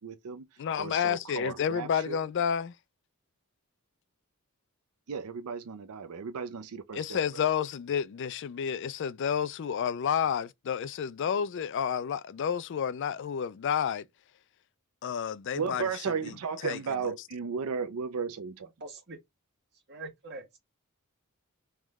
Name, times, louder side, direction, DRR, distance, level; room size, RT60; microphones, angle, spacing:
voice 1, 0.0-0.5 0.8-2.2 5.1-7.2 15.5-18.7, right 6 dB, 85° right, 0.5 m, -35 dB
voice 2, 0.6-2.7 6.9-14.1 15.0-15.9 16.2-16.3 16.6-17.1, left 8 dB, 55° left, 0.3 m, -30 dB
voice 3, 18.8-19.2 19.9-20.6, right 2 dB, 50° right, 1.7 m, -43 dB
3.6 x 3.1 x 3.5 m
head